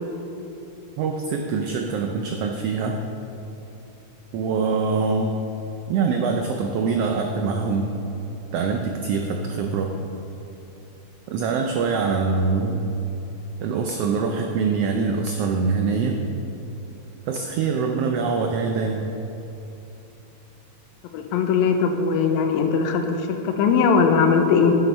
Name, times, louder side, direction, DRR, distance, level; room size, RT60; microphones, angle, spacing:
voice 1, 1.0-3.0 4.3-5.4 5.9-7.9 8.5-9.9 11.3-12.9 13.6-16.2 17.3-19.1, right 4 dB, 80° right, 3 dB, 1.4 m, -24 dB
voice 2, 21.1-24.8, left 5 dB, 85° left, 5 dB, 2.0 m, -20 dB
9.0 x 8.0 x 5.3 m, 3.0 s
omnidirectional pair, 3.3 m